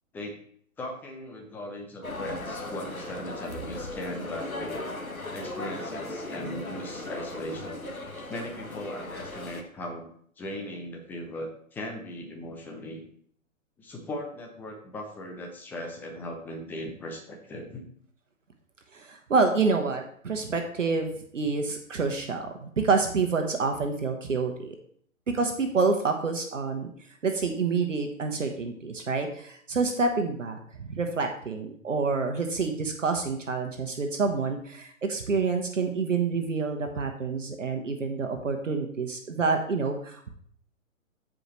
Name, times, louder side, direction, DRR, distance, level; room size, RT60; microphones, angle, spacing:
voice 1, 0.8-4.8 5.3-7.9 8.3-10.1 10.4-13.0 13.8-17.9, left 1 dB, 5° left, 1 dB, 0.6 m, -38 dB
sound 1, 2.0-9.6, left 2 dB, 85° left, 1.4 m, -37 dB
voice 2, 18.9-24.8 25.3-26.9 27.2-40.3, right 4 dB, 65° right, 4 dB, 1.3 m, -28 dB
14.5 x 5.1 x 3.2 m, 0.62 s
figure-of-eight pair, 120°, 41 cm